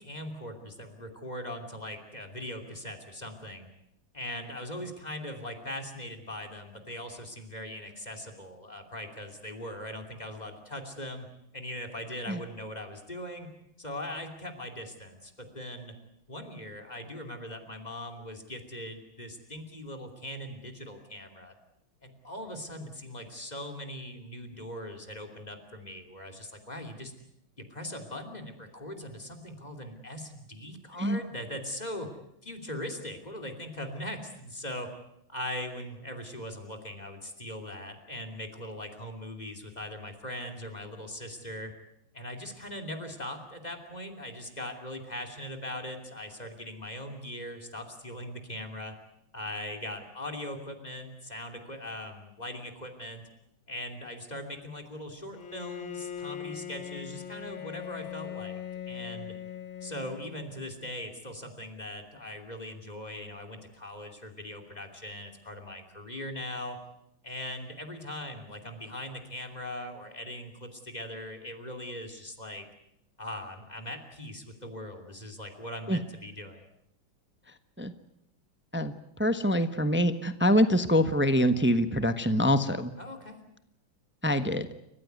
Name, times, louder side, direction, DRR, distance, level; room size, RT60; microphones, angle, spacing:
voice 1, 0.0-3.7 4.1-11.3 11.5-13.5 13.8-15.9 16.3-21.5 22.0-27.1 27.6-32.2 32.4-34.9 35.3-41.7 42.1-48.9 49.3-53.2 53.7-58.6 58.9-59.3 59.8-66.8 67.2-72.6 73.2-76.6 83.0-83.4, left 1 dB, 20° left, 5 dB, 3.0 m, -40 dB
Bowed string instrument, 55.3-60.8, left 9 dB, 70° left, 2.3 m, -40 dB
voice 2, 79.2-82.9 84.2-84.7, equal, 10° right, 10 dB, 0.6 m, -25 dB
30.0 x 15.0 x 9.5 m, 0.80 s
omnidirectional pair, 2.2 m